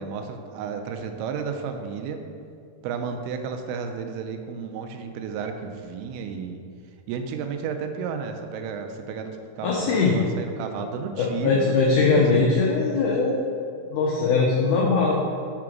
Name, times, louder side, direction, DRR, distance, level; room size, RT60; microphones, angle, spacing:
voice 1, 0.0-2.2 2.8-6.6 7.1-12.6, right 6 dB, 85° right, 5 dB, 2.5 m, -32 dB
voice 2, 9.6-10.2 11.1-13.4 13.9-15.1, left 4 dB, 85° left, -3 dB, 1.8 m, -21 dB
5.8 x 3.7 x 5.9 m, 2.4 s
omnidirectional pair, 4.4 m